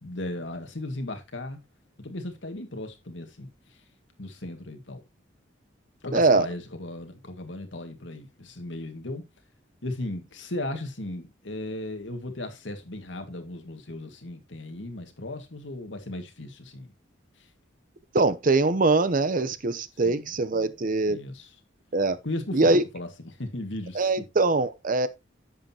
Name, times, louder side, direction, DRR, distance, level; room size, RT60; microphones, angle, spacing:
voice 1, 0.0-1.6 2.0-3.5 4.2-5.0 6.0-9.2 9.8-16.9 20.0-20.3 21.1-21.5 22.2-24.0, left 1 dB, 75° left, 2.0 m, -36 dB
voice 2, 6.1-6.5 18.1-21.2 21.9-22.2 22.5-22.8 23.9-25.1, right 3 dB, 45° right, 0.8 m, -22 dB
10.5 x 7.7 x 2.9 m
head